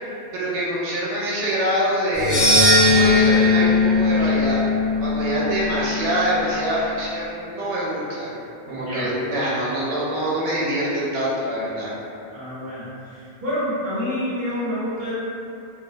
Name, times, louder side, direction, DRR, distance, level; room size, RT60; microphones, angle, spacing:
voice 1, 0.0-2.4 2.9-4.6 5.0-8.3 8.7-11.9, right 1 dB, 85° right, -7 dB, 0.9 m, -25 dB
sound 1, 2.1-6.5, left 2 dB, 50° left, 0.4 m, -19 dB
voice 2, 8.6-9.1 12.3-15.1, equal, 60° right, -14 dB, 1.1 m, -28 dB
2.4 x 2.0 x 2.6 m, 2.8 s
omnidirectional pair, 1.2 m